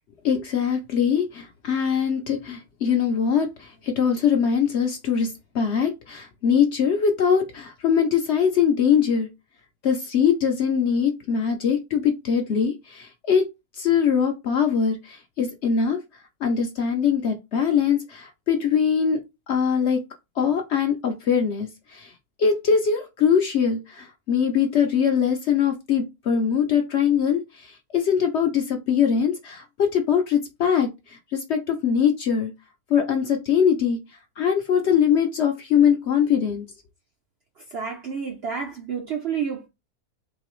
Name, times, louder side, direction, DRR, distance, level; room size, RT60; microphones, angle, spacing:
voice 1, 0.2-9.3 9.8-13.5 13.8-16.0 16.4-19.2 19.5-20.0 20.4-22.1 22.4-32.5 32.9-34.0 34.4-36.7, left 7 dB, 60° left, 0.7 m, -22 dB
voice 2, 37.6-39.7, right 6 dB, 65° right, 0.6 m, -30 dB
3.8 x 2.9 x 3.0 m
omnidirectional pair, 1.6 m